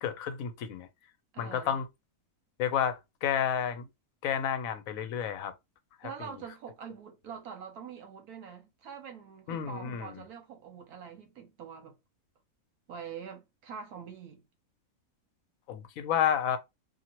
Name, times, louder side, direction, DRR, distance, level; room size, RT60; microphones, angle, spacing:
voice 1, 0.0-0.9 1.4-1.8 2.6-3.8 4.2-5.5 6.0-6.1 9.5-10.1 15.7-16.6, left 9 dB, 70° left, 0.9 m, -30 dB
voice 2, 1.3-1.8 6.0-12.0 12.9-14.4, right 7 dB, 80° right, 1.2 m, -45 dB
2.8 x 2.6 x 2.8 m
omnidirectional pair, 1.6 m